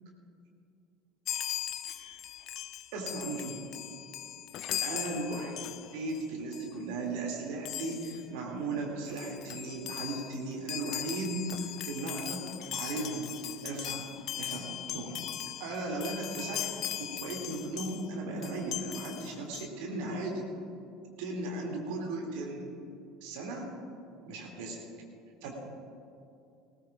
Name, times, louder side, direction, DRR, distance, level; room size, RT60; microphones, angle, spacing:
Chime, 1.3-6.2 6.5-6.8 7.7-8.3 8.8-8.9 9.1-18.1 18.4-19.7, left 12 dB, 50° left, 0.5 m, -39 dB
voice 1, 2.9-3.6 4.8-5.5 5.9-12.5 12.7-13.3 13.6-14.0 14.4-15.1 15.6-16.7 17.0-20.4 21.2-22.7 23.2-23.7 24.3-24.8 25.4-25.5, right 2 dB, 60° right, 0 dB, 2.4 m, -36 dB
19.0 x 18.5 x 2.4 m, 2.6 s
figure-of-eight pair, 65°, 0 cm